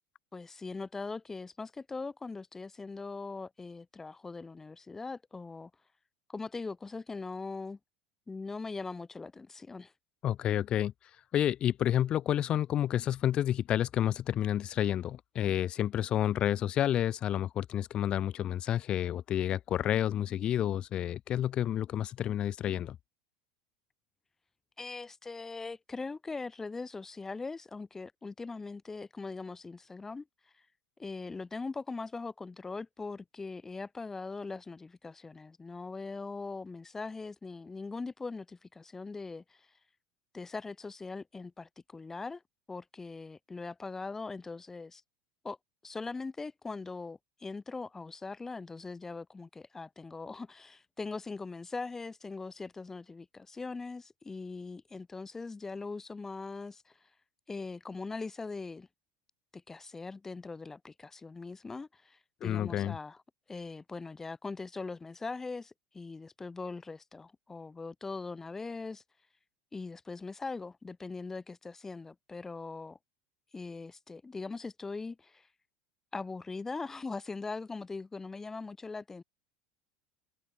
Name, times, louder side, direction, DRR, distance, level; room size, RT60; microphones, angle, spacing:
voice 1, 0.3-5.7 6.3-7.8 8.3-9.9 24.8-30.3 31.0-39.7 40.3-42.4 42.7-45.0 45.4-45.6 45.8-57.0 57.5-58.9 59.5-63.2 63.5-69.0 69.7-73.0 73.5-75.5 76.1-79.2, left 3 dB, 15° left, 5.4 m, -41 dB
voice 2, 10.2-10.9 11.3-23.0 62.4-63.0, left 11 dB, 40° left, 0.5 m, -30 dB
hypercardioid pair, 90°, 2 cm